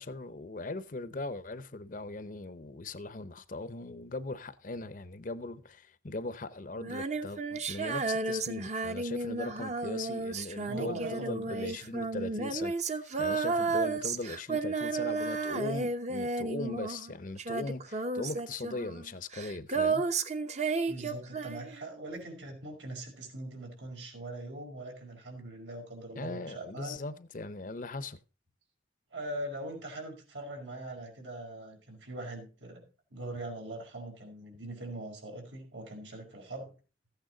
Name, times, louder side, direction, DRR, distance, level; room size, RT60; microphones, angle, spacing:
voice 1, 0.0-20.0 26.2-28.2, left 2 dB, 45° left, 0.7 m, -39 dB
Female singing, 6.8-17.1 17.4-21.8, right 3 dB, 40° right, 0.8 m, -33 dB
voice 2, 10.7-11.9 20.9-27.0 29.1-36.7, right 1 dB, 90° right, 5.2 m, -42 dB
14.5 x 8.9 x 3.9 m
head